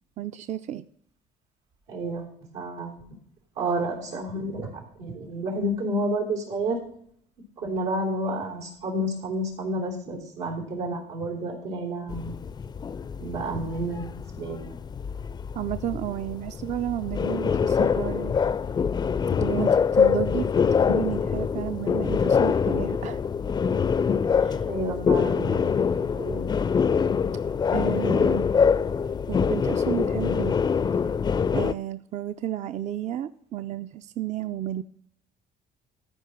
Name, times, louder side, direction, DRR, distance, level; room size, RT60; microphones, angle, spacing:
voice 1, 0.2-0.8 15.6-18.4 19.4-20.5 20.8-23.2 24.4-24.7 27.7-28.5 29.3-30.6 31.5-34.8, right 12 dB, 45° right, 12 dB, 0.4 m, -32 dB
voice 2, 1.9-3.0 3.5-6.8 7.6-12.3 13.2-14.8 24.7-25.7 26.0-26.4, right 1 dB, 90° right, 0 dB, 3.5 m, -30 dB
sound 1, 12.1-31.7, left 6 dB, 25° left, 0.4 m, -24 dB
13.5 x 5.0 x 6.0 m, 0.66 s
cardioid pair, 110°, 17 cm